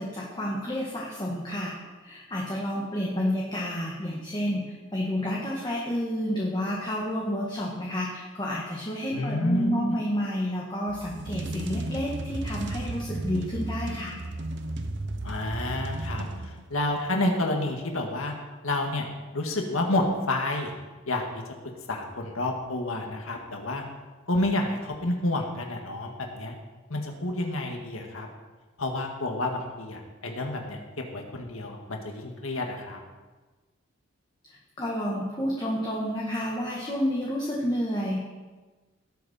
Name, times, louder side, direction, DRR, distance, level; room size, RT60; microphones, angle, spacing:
voice 1, 0.0-1.7 2.0-4.6 4.9-14.1 34.8-38.2, equal, 20° left, -4 dB, 1.6 m, -30 dB
voice 2, 9.1-10.0 15.2-18.3 18.6-19.1 19.3-20.7 21.1-21.4 21.9-23.8 24.3-26.6 26.9-28.3 28.8-33.0, left 1 dB, 80° left, 2 dB, 2.0 m, -29 dB
sound 1, 10.9-16.9, right 2 dB, 55° right, 0.9 m, -34 dB
18.5 x 8.6 x 4.4 m, 1.3 s
head